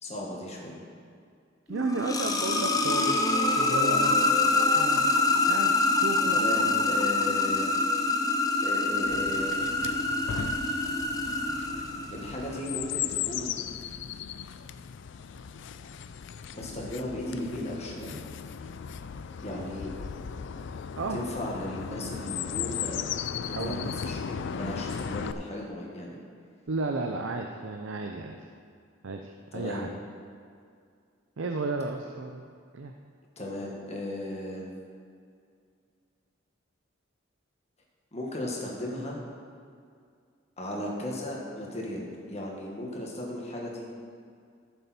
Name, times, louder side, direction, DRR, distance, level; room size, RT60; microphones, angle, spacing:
voice 1, 0.0-0.8 6.3-7.8 8.6-9.7 12.1-13.6 16.5-18.2 19.4-19.9 21.1-23.0 23.3-26.2 29.5-29.9 33.4-34.7 38.1-39.2 40.6-43.8, left 1 dB, 35° left, -2 dB, 1.8 m, -36 dB
sound 1, 1.7-12.5, left 3 dB, 20° left, 0.7 m, -25 dB
voice 2, 1.7-3.2 3.6-4.1 4.7-5.0 5.5-6.4 21.0-21.2 23.5-23.9 26.7-28.4 29.0-29.9 31.4-32.4 32.7-32.9, right 3 dB, 75° right, 3 dB, 0.6 m, -33 dB
Chirp tweet, 9.0-25.3, left 8 dB, 65° left, 0.4 m, -37 dB
14.0 x 7.0 x 4.4 m, 2.2 s
head